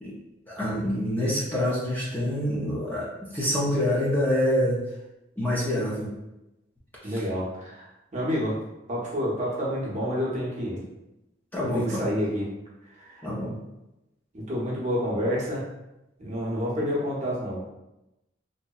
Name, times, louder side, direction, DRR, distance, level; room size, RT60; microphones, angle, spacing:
voice 1, 0.5-3.1 3.3-4.8 5.4-6.1 11.5-12.0 13.2-13.5, equal, 10° left, -6 dB, 0.4 m, -26 dB
voice 2, 7.0-8.6 8.9-10.8 11.6-12.4 12.9-13.3 14.3-15.6 16.2-17.6, equal, 40° right, -5 dB, 0.7 m, -29 dB
2.7 x 2.0 x 2.3 m, 0.93 s
head